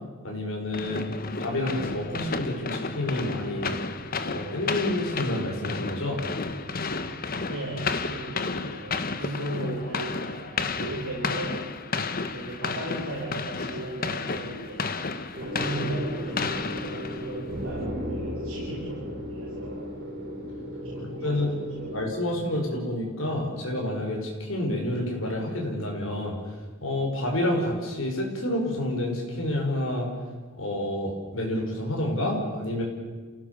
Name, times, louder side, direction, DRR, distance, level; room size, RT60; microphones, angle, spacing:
voice 1, 0.2-1.1 1.4-3.7 4.2-6.2 10.8-10.9 21.0-21.5 21.9-26.4 26.8-30.1 30.6-32.8, left 1 dB, 60° left, 0 dB, 5.7 m, -29 dB
sound 1, 0.7-17.5, left 4 dB, 40° left, 1.2 m, -32 dB
voice 2, 7.5-11.7 12.3-14.9 15.4-19.9 20.7-21.9, right 1 dB, 65° right, -4 dB, 5.3 m, -37 dB
sound 2, 15.3-22.1, equal, 45° right, 4.3 m, -35 dB
28.0 x 17.0 x 7.1 m, 1.4 s
head